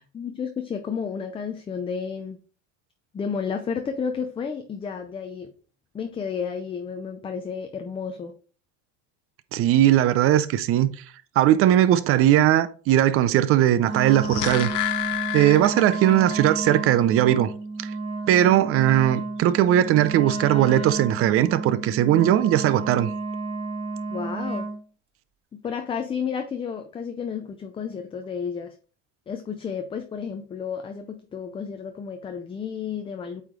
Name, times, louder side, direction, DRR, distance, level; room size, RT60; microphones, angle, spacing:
voice 1, 0.1-2.4 3.1-5.5 5.9-8.3 24.1-24.7 25.6-28.7 29.3-33.4, left 6 dB, 15° left, 0.4 m, -31 dB
voice 2, 9.5-10.9 11.4-14.7 15.3-17.5 17.8-17.9 18.3-23.1, right 12 dB, 40° right, 0.5 m, -19 dB
Wind instrument woodwind instrument, 13.8-24.8, right 3 dB, 15° right, 1.1 m, -31 dB
sound 1, 13.9-16.4 16.7-16.8, left 16 dB, 80° left, 0.8 m, -30 dB
8.3 x 3.2 x 3.7 m
supercardioid pair, 130°, 36 cm